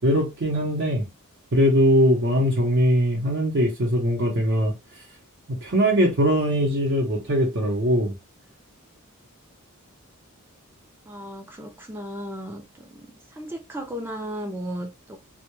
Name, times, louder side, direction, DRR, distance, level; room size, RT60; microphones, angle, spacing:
voice 1, 0.0-1.1 1.5-4.7 5.6-8.1, equal, 55° right, 0.7 m, -21 dB
voice 2, 11.1-12.9 13.3-15.2, equal, 10° right, 0.4 m, -35 dB
2.1 x 2.1 x 3.0 m
head